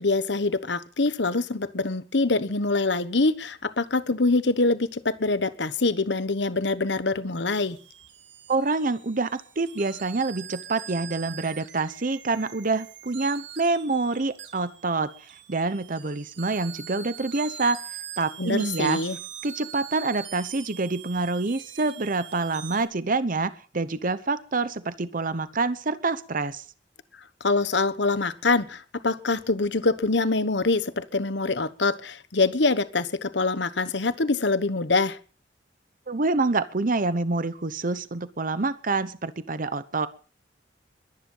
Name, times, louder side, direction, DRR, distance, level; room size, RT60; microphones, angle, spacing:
voice 1, 0.0-7.8 18.4-19.2 27.4-35.2, left 3 dB, 75° left, 1.2 m, -24 dB
sound 1, 7.6-22.9, right 9 dB, 80° right, 2.3 m, -43 dB
voice 2, 8.5-15.1 15.5-17.8 18.2-19.0 19.4-26.6 36.1-40.1, right 3 dB, 50° right, 0.9 m, -27 dB
22.5 x 10.5 x 5.6 m
head